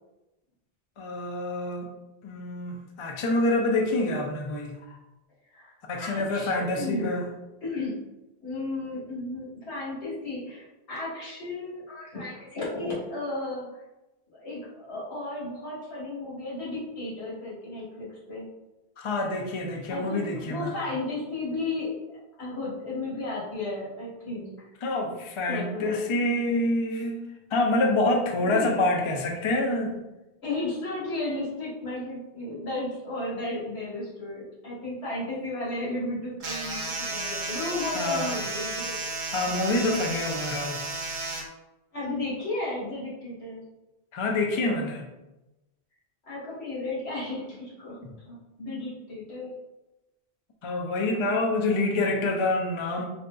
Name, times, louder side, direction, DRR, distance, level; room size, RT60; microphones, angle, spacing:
voice 1, 1.0-1.9 2.2-5.0 5.9-7.3 19.0-20.9 24.8-27.2 27.5-30.0 37.9-38.4 39.3-40.8 44.1-45.1 50.6-53.0, left 2 dB, 50° left, 1 dB, 0.3 m, -27 dB
voice 2, 5.5-7.2 7.6-8.0 8.4-13.6 14.3-18.5 19.9-24.7 25.5-26.0 28.4-28.8 30.4-38.9 39.3-39.4 40.1-40.2 41.9-43.6 46.3-49.5, left 2 dB, 75° left, -7 dB, 1.6 m, -34 dB
sound 1, 36.4-41.4, right 3 dB, 55° right, 0.7 m, -33 dB
3.9 x 2.6 x 2.2 m, 1.0 s
omnidirectional pair, 1.1 m